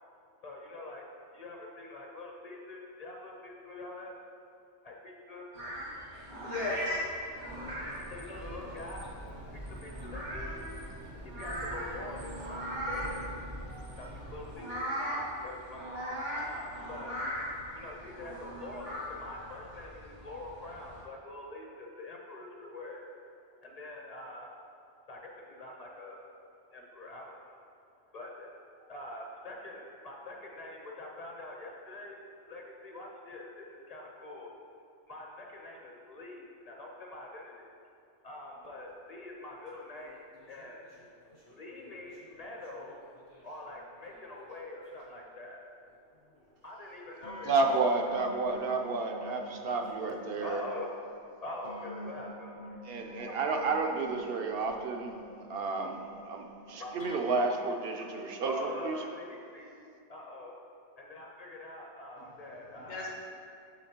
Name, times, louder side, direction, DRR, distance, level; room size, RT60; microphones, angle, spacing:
voice 1, 0.3-4.1 4.8-5.5 6.8-6.9 8.1-9.2 9.5-10.6 11.0-13.3 14.0-15.9 16.3-17.2 17.7-23.1 23.6-24.5 25.1-26.2 26.7-27.6 28.0-34.5 35.1-37.9 38.2-40.9 41.5-43.0 43.4-45.6 46.6-48.2 48.5-49.7 50.1-53.5 54.4-54.5 55.2-56.0 56.3-57.2 58.1-59.7 60.1-60.6 60.9-63.1, left 1 dB, 40° left, -1 dB, 0.8 m, -45 dB
sound 1, 5.5-21.0, equal, 85° right, 1.9 m, -40 dB
voice 2, 6.4-7.0 7.5-7.7 62.2-62.4 62.7-63.1, left 3 dB, 60° left, -2 dB, 1.2 m, -37 dB
sound 2, 7.5-14.5, right 1 dB, 30° right, 0.3 m, -44 dB
sound 3, 39.4-44.6 44.9-45.3 45.9-46.5 47.2-50.8 51.6-57.4, equal, 75° left, 1.8 m, -49 dB
voice 3, 47.4-50.6 52.8-55.2 55.5-59.0, right 3 dB, 65° right, 3 dB, 0.7 m, -31 dB
7.1 x 7.0 x 2.8 m, 2.5 s
omnidirectional pair, 1.2 m